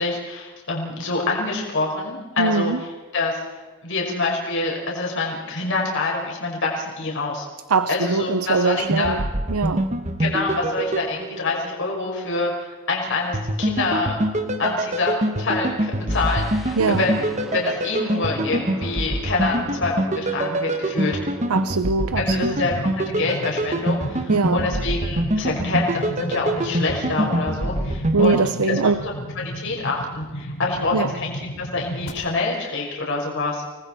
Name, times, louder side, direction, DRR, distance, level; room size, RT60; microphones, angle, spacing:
voice 1, 0.0-3.4 3.8-7.4 7.9-9.1 10.2-14.2 14.6-21.2 22.2-33.6, left 3 dB, 60° left, -1 dB, 5.6 m, -26 dB
voice 2, 2.4-2.8 7.7-9.2 9.5-9.9 16.8-17.0 21.5-22.6 24.3-24.6 28.1-29.0 30.9-31.1, right 4 dB, 90° right, 12 dB, 0.7 m, -21 dB
sound 1, 8.8-11.8 13.3-28.4, right 1 dB, 35° right, 1.4 m, -25 dB
sound 2, 16.1-21.8 22.1-22.4, equal, ahead, 2.9 m, -41 dB
sound 3, 22.1-32.1, equal, 85° left, 5.9 m, -35 dB
29.5 x 20.0 x 4.5 m, 1.2 s
head